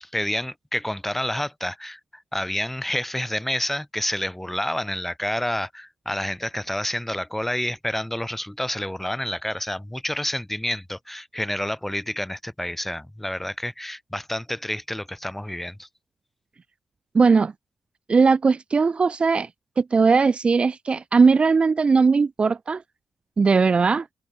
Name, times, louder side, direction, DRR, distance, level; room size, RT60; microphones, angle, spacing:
voice 1, 0.0-15.9, left 1 dB, 5° left, 1.4 m, -29 dB
voice 2, 17.1-17.5 18.1-19.5 19.8-22.8 23.4-24.1, right 4 dB, 45° right, 1.2 m, -19 dB
supercardioid pair, 60°, 3 cm